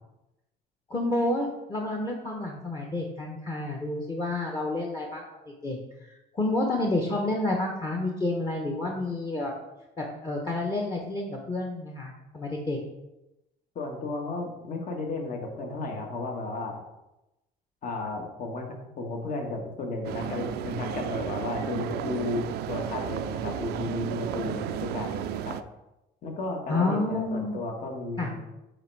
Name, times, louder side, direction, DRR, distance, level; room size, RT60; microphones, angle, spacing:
voice 1, 0.9-5.3 5.6-5.8 6.1-9.5 10.0-12.8 26.7-27.6 28.2-28.3, left 2 dB, 25° left, 0 dB, 1.1 m, -29 dB
voice 2, 13.7-16.8 17.8-25.6 26.2-28.4, left 2 dB, 50° left, 2 dB, 1.5 m, -33 dB
sound 1, 20.0-25.6, right 11 dB, 75° right, 0.4 m, -33 dB
8.3 x 3.4 x 4.7 m, 0.95 s
cardioid pair, 110°, 17 cm